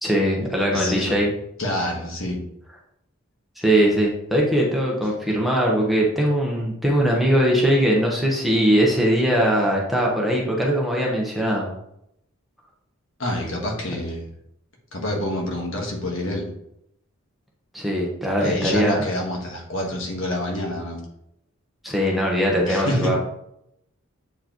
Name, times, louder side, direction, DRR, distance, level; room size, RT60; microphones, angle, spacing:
voice 1, 0.0-1.3 3.6-11.7 17.7-19.1 21.8-23.2, equal, ahead, -3 dB, 1.0 m, -21 dB
voice 2, 0.7-1.2 1.6-2.4 13.2-14.3 14.9-16.5 18.4-21.0 22.7-23.2, left 1 dB, 60° left, 0 dB, 1.5 m, -27 dB
8.0 x 4.8 x 3.0 m, 0.78 s
head